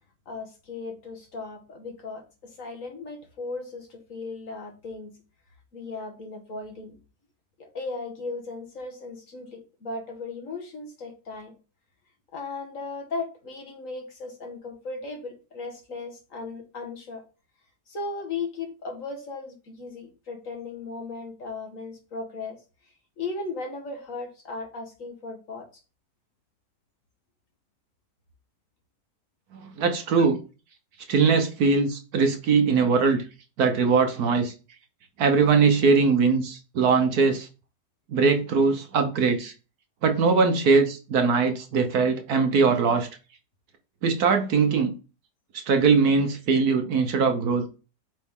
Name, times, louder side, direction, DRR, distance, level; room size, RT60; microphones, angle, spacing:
voice 1, 0.3-5.2 5.7-7.0 7.6-11.5 12.3-17.2 17.9-22.6 23.2-25.7 30.2-30.3, left 3 dB, 50° left, 2 dB, 1.8 m, -36 dB
voice 2, 29.8-30.4 31.1-33.2 33.6-34.5 35.2-37.5 38.1-39.5 40.0-43.1 44.0-44.9 45.7-47.7, right 5 dB, 65° right, 6 dB, 1.3 m, -21 dB
7.5 x 4.0 x 3.7 m, 0.34 s
omnidirectional pair, 1.9 m